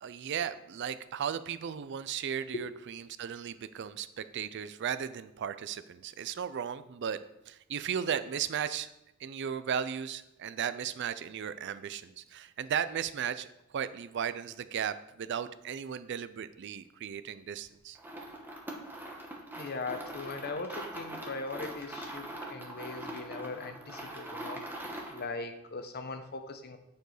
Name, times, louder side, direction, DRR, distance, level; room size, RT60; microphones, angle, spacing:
voice 1, 0.0-7.2 7.5-8.9 9.2-13.5 13.7-18.0, right 8 dB, 55° right, 13 dB, 0.4 m, -36 dB
sound 1, 18.0-25.3, right 1 dB, 10° right, 1.0 m, -42 dB
voice 2, 19.6-24.6 25.1-26.8, left 3 dB, 45° left, 7 dB, 0.8 m, -39 dB
9.3 x 4.5 x 4.9 m, 0.88 s
head